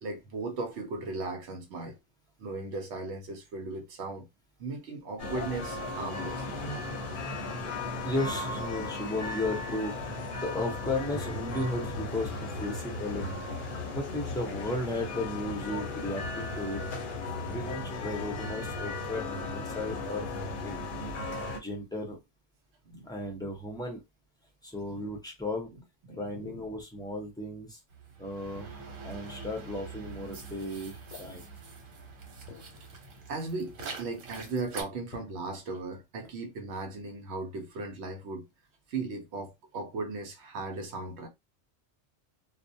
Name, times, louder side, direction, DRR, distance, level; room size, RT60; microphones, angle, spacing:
voice 1, 0.0-2.0 2.4-4.3 4.6-6.9 7.8-7.9 22.8-23.1 24.9-25.0 26.1-26.6 33.3-38.4 38.9-41.3, right 3 dB, 65° right, 0.8 m, -37 dB
sound 1, 5.2-21.6, left 2 dB, 50° left, 0.7 m, -36 dB
voice 2, 8.0-9.9 10.4-13.4 13.9-16.8 17.5-20.8 21.6-22.2 23.0-24.0 24.6-25.7 26.1-27.8 28.2-31.5, left 1 dB, 5° left, 0.4 m, -35 dB
sound 2, 27.9-34.8, right 4 dB, 85° right, 1.1 m, -44 dB
sound 3, 31.1-31.9 32.5-33.5 33.8-34.4 35.1-35.6, left 5 dB, 85° left, 0.9 m, -51 dB
2.3 x 2.0 x 2.6 m
omnidirectional pair, 1.3 m